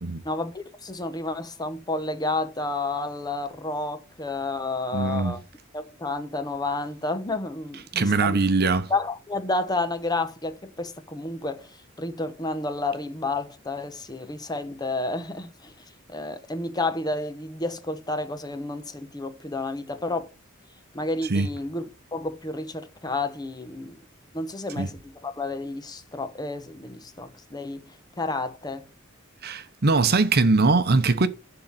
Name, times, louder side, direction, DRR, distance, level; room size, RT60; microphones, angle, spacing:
voice 1, 0.2-5.4 5.7-8.4 8.9-15.7 16.1-20.3 20.9-24.0 24.3-28.9, left 2 dB, 20° left, 1.0 m, -31 dB
voice 2, 4.9-5.4 7.9-8.9 21.3-21.5 24.8-24.9 29.4-31.3, right 3 dB, 50° right, 0.8 m, -21 dB
11.5 x 3.9 x 7.4 m
head